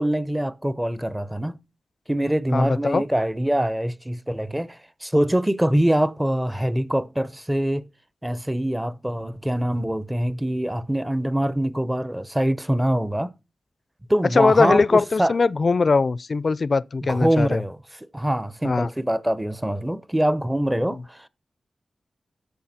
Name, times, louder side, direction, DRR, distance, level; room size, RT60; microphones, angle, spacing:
voice 1, 0.0-1.5 2.1-7.9 8.2-13.3 14.1-15.3 17.1-21.3, right 1 dB, 10° right, 0.8 m, -24 dB
voice 2, 2.5-3.0 14.3-17.6 18.6-18.9, left 4 dB, 50° left, 0.5 m, -20 dB
11.5 x 7.3 x 4.3 m
wide cardioid pair, 85°, 0 cm